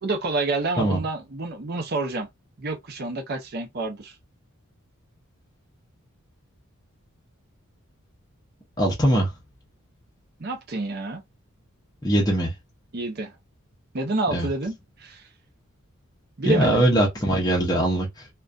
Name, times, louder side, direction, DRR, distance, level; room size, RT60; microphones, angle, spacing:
voice 1, 0.0-2.3 2.6-4.2 10.4-11.2 12.9-13.3 13.9-14.7 15.0-15.2 16.4-16.8, right 2 dB, 45° right, 0.6 m, -28 dB
voice 2, 8.8-9.3 12.0-12.6 14.3-14.5 16.4-18.3, right 1 dB, 15° left, 0.6 m, -21 dB
2.4 x 2.2 x 2.4 m
head